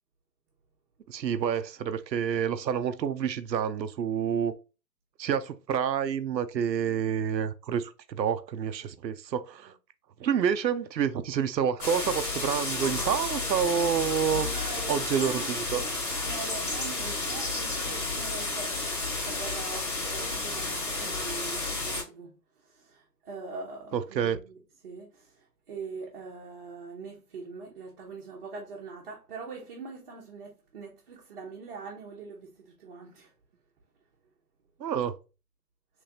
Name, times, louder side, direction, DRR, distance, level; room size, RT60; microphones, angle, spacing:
voice 1, 1.1-4.5 5.2-9.7 10.2-14.5 14.9-15.8 16.1-16.2 23.9-24.4 34.8-35.1, right 8 dB, 90° right, 0.6 m, -28 dB
sound 1, 11.8-22.0, left 3 dB, 60° left, 1.9 m, -31 dB
voice 2, 14.4-15.5 16.2-18.7 19.1-22.3 22.7-25.3 25.7-33.3, right 4 dB, 35° right, 0.9 m, -42 dB
3.3 x 3.3 x 2.7 m
hypercardioid pair, 150°, 50 cm